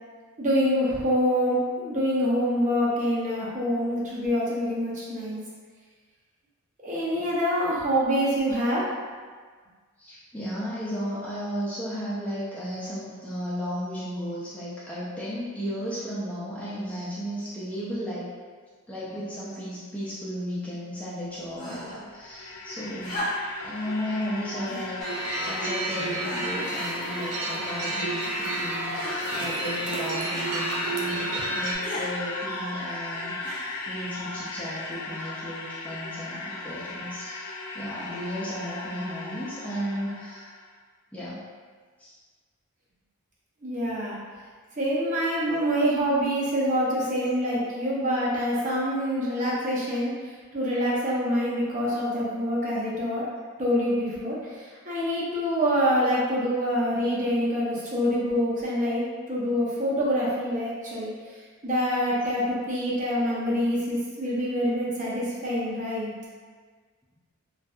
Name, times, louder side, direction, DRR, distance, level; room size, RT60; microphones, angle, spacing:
voice 1, 0.4-5.4 6.8-8.9 43.6-44.2 44.8-53.3 53.6-66.1, equal, 35° right, -6 dB, 0.6 m, -26 dB
voice 2, 10.0-18.3 18.9-23.2 23.6-25.0 25.4-33.4 33.9-40.5 41.1-41.5 42.0-42.1, equal, 5° left, -9 dB, 0.3 m, -34 dB
sound 1, 21.5-22.0 23.0-23.7 24.6-24.9 25.7-25.8 26.2-26.7 27.5-28.1 29.0-29.4 30.3-30.6 31.8-32.1 33.4-33.9 34.9-35.0, left 1 dB, 40° left, 0.8 m, -36 dB
sound 2, 21.9-40.6, left 2 dB, 85° left, 0.4 m, -36 dB
sound 3, 25.0-31.7, right 2 dB, 85° right, 0.4 m, -31 dB
2.6 x 2.2 x 2.3 m, 1.5 s
head